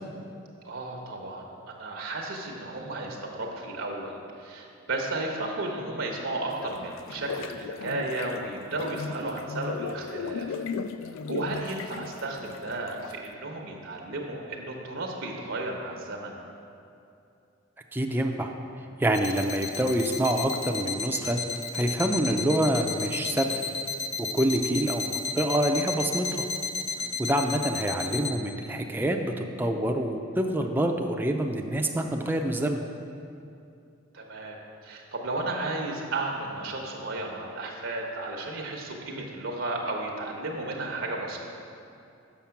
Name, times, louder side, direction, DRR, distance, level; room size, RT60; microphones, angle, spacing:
voice 1, 0.6-1.4 1.8-10.6 11.3-16.4 26.9-27.1 34.1-41.4, right 2 dB, 80° right, 0 dB, 0.9 m, -34 dB
sound 1, 6.5-13.3, left 5 dB, 80° left, 0.3 m, -36 dB
voice 2, 17.9-18.5 19.0-21.4 21.7-23.5 24.2-26.5 27.2-32.8, right 1 dB, 10° right, 3 dB, 0.4 m, -26 dB
sound 2, 19.1-28.3, left 5 dB, 35° left, 0.6 m, -32 dB
7.2 x 5.8 x 5.8 m, 2.6 s
head